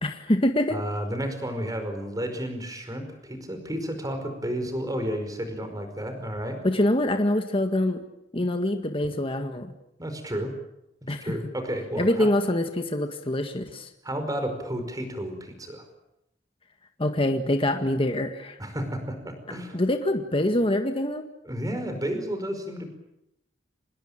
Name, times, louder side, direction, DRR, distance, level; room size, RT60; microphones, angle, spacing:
voice 1, 0.0-0.8 6.6-8.0 8.3-9.7 11.1-11.4 12.0-13.9 17.0-18.6 19.7-21.3, left 1 dB, 30° left, 6 dB, 1.8 m, -25 dB
voice 2, 0.7-6.6 10.0-10.5 11.2-12.3 14.0-15.8 18.6-19.8 21.4-22.9, equal, 20° right, 7 dB, 5.1 m, -32 dB
26.5 x 20.0 x 8.8 m, 0.85 s
head